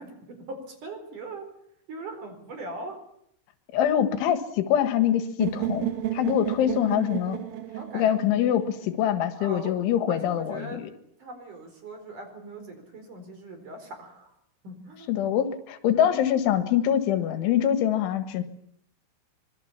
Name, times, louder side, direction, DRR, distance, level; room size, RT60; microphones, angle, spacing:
voice 1, 0.0-1.5 1.9-3.0 7.8-8.2 9.4-9.7 10.1-10.8 11.2-14.3 14.6-15.1, right 2 dB, 40° right, 6 dB, 5.7 m, -40 dB
voice 2, 3.7-7.4 7.9-10.9 15.1-18.4, left 10 dB, 75° left, 10 dB, 3.8 m, -24 dB
sound 1, 5.4-9.4, right 13 dB, 85° right, 4.5 m, -32 dB
25.5 x 22.0 x 7.3 m, 0.70 s
omnidirectional pair, 5.7 m